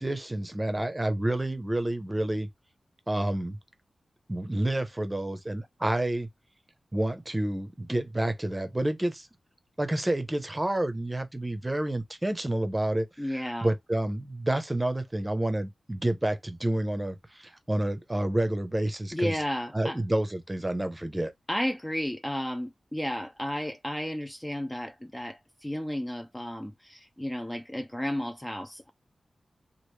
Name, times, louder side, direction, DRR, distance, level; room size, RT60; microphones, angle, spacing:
voice 1, 0.0-2.5 3.1-3.6 4.3-6.3 6.9-9.3 9.8-19.4 19.7-21.3, right 1 dB, 20° right, 0.7 m, -29 dB
voice 2, 13.2-13.7 19.1-20.0 21.5-28.9, left 1 dB, 15° left, 0.4 m, -33 dB
3.1 x 2.5 x 3.1 m
cardioid pair, 70°, 0 cm